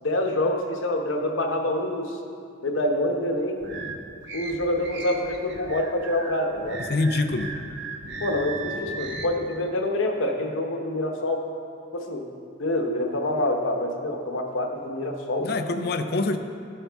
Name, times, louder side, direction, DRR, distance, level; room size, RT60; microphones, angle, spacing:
voice 1, 0.0-2.2 2.6-3.7 4.3-6.8 8.2-11.5 11.9-12.3 12.6-15.5, left 1 dB, 80° left, 3 dB, 0.9 m, -26 dB
sound 1, 3.6-9.3, right 3 dB, 60° right, 0.7 m, -36 dB
voice 2, 6.9-7.5 15.4-16.4, left 2 dB, 50° left, 7 dB, 0.5 m, -25 dB
12.5 x 5.5 x 3.5 m, 2.4 s
head